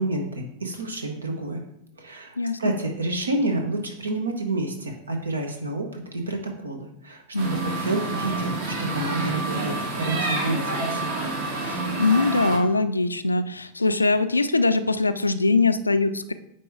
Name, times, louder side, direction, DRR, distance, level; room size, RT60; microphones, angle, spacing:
voice 1, 0.0-1.6 2.0-8.5 8.8-11.1, right 2 dB, 75° right, 4 dB, 1.2 m, -29 dB
voice 2, 2.4-2.7 7.3-7.8 11.7-16.3, left 3 dB, 80° left, 11 dB, 0.4 m, -22 dB
sound 1, 7.4-12.6, right 2 dB, 55° right, 1.7 m, -28 dB
8.9 x 3.0 x 4.8 m, 0.75 s
figure-of-eight pair, 90°, 0 cm